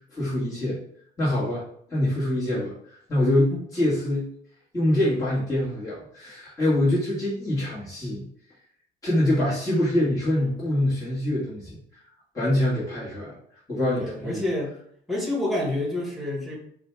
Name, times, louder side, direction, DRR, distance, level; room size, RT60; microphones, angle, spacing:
voice 1, 0.1-0.8 1.2-1.6 1.9-2.7 3.1-4.3 4.7-8.3 9.0-11.8 12.3-13.4 13.7-14.4, left 1 dB, 20° left, -9 dB, 1.7 m, -24 dB
voice 2, 14.0-14.7 15.1-16.6, left 1 dB, ahead, -3 dB, 1.6 m, -28 dB
4.9 x 2.4 x 4.5 m, 0.66 s
cardioid pair, 110°, 17 cm